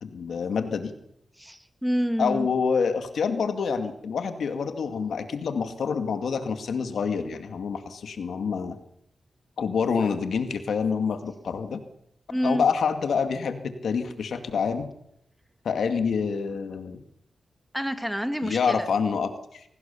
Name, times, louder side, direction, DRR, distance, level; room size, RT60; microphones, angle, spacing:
voice 1, 0.0-0.9 2.2-8.8 9.6-11.8 12.4-14.9 15.6-17.0 18.4-19.6, left 6 dB, 80° left, 7 dB, 2.3 m, -27 dB
voice 2, 1.4-2.5 12.3-12.6 17.7-18.9, equal, ahead, 8 dB, 2.0 m, -28 dB
25.5 x 18.0 x 7.1 m, 0.78 s
wide cardioid pair, 105°, 0 cm